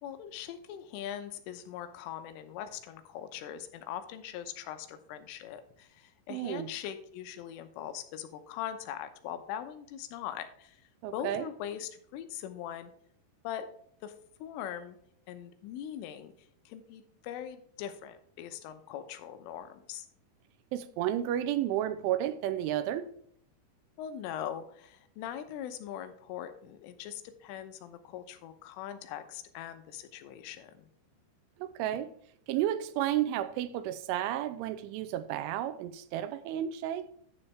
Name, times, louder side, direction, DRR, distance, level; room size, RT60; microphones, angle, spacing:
voice 1, 0.0-10.8 11.1-12.9 13.5-13.7 14.0-14.1 14.4-15.0 15.3-16.3 16.7-20.1 24.0-30.9, left 10 dB, 90° left, 3.5 m, -41 dB
voice 2, 6.3-6.7 11.0-11.5 20.7-23.1 31.6-32.1 32.5-37.1, right 12 dB, 85° right, 3.1 m, -32 dB
11.0 x 7.0 x 3.4 m
omnidirectional pair, 5.6 m